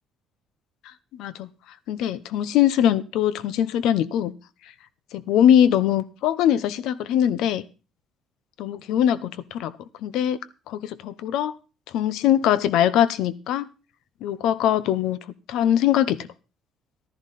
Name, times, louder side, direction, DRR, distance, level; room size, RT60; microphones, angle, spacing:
voice 1, 1.9-4.3 5.1-7.6 8.6-9.7 10.0-10.4 10.7-11.5 11.9-13.6 14.2-15.2 15.5-16.2, left 10 dB, 70° left, 17 dB, 0.8 m, -21 dB
14.5 x 11.5 x 4.2 m, 0.33 s
cardioid pair, 175°, 0 cm